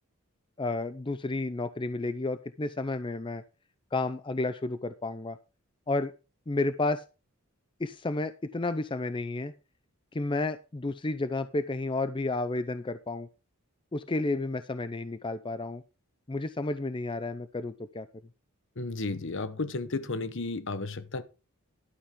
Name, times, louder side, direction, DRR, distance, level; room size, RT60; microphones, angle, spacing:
voice 1, 0.6-3.4 3.9-5.4 5.9-6.1 6.5-7.0 7.8-9.5 10.1-13.3 13.9-15.8 16.3-18.1, left 2 dB, 20° left, 0.5 m, -31 dB
voice 2, 18.8-21.2, left 3 dB, 55° left, 1.0 m, -33 dB
11.5 x 9.8 x 3.7 m
head